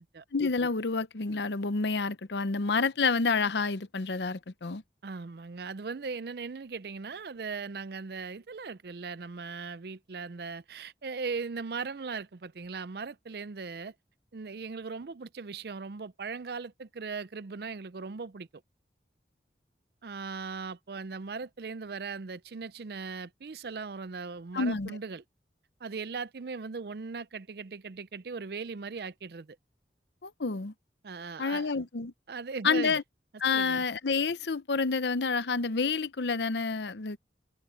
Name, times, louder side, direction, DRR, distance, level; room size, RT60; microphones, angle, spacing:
voice 1, 0.3-4.8 24.5-25.0 30.2-30.7 31.4-32.1 32.6-33.0 33.4-37.2, left 4 dB, 75° left, 0.8 m, -29 dB
voice 2, 5.0-13.9 14.3-18.5 20.0-25.2 25.8-29.6 31.0-31.8 32.3-33.0 33.5-33.8, right 4 dB, 60° right, 0.5 m, -39 dB
head